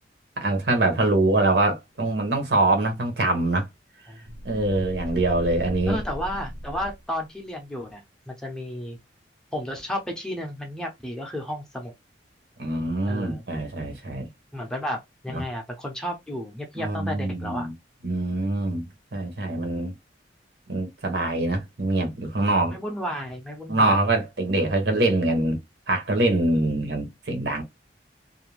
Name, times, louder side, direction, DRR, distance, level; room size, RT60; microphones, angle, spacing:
voice 1, 0.4-3.7 4.4-6.0 12.6-14.3 15.3-15.4 16.8-17.7 18.0-18.8 19.1-19.9 20.7-22.7 23.7-25.6 25.9-27.6, right 2 dB, 70° right, 0.9 m, -24 dB
sound 1, 4.2-7.2, equal, 45° right, 0.6 m, -37 dB
voice 2, 5.9-9.0 9.5-11.9 13.0-13.4 14.5-17.7 22.7-24.0, equal, 5° left, 0.5 m, -33 dB
2.5 x 2.1 x 3.1 m
head